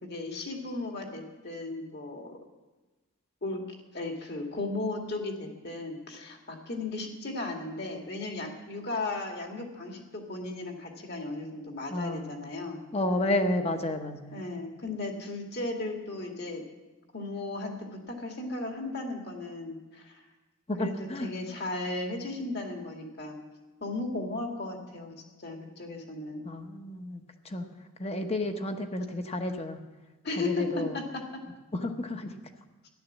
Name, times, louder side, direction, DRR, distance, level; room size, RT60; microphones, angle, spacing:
voice 1, 0.0-2.4 3.4-3.6 3.9-12.8 14.3-16.6 17.1-20.2 20.8-23.4 23.8-26.5 30.2-31.2, left 2 dB, 45° left, 2 dB, 2.1 m, -35 dB
voice 2, 11.9-12.3 12.9-14.4 20.7-21.3 26.4-27.7 28.0-29.8 30.4-31.0 31.7-32.3, left 1 dB, 25° left, 6 dB, 1.1 m, -31 dB
14.0 x 11.5 x 7.3 m, 1.2 s
head